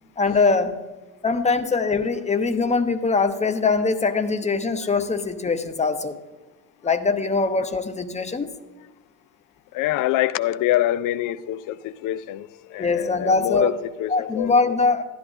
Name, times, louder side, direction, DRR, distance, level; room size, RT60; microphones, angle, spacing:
voice 1, 0.2-0.8 1.2-6.2 6.8-8.5 12.8-13.7 14.1-15.0, left 4 dB, 15° left, 0.8 m, -22 dB
voice 2, 9.7-14.8, left 14 dB, 40° left, 0.5 m, -25 dB
15.0 x 11.5 x 2.5 m
figure-of-eight pair, 55°, 49 cm